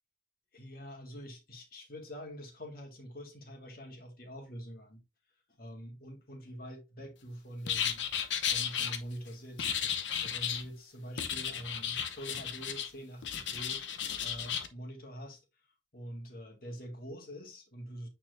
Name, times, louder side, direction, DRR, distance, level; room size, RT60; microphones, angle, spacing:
voice 1, 0.5-5.0 5.6-8.1 8.4-13.8 14.2-15.4 15.9-18.1, equal, 55° left, 1.9 m, -45 dB
sound 1, 7.7-9.0 9.6-10.7 11.2-12.9 13.2-14.7, left 8 dB, 85° left, 0.9 m, -34 dB
8.7 x 4.2 x 2.6 m
head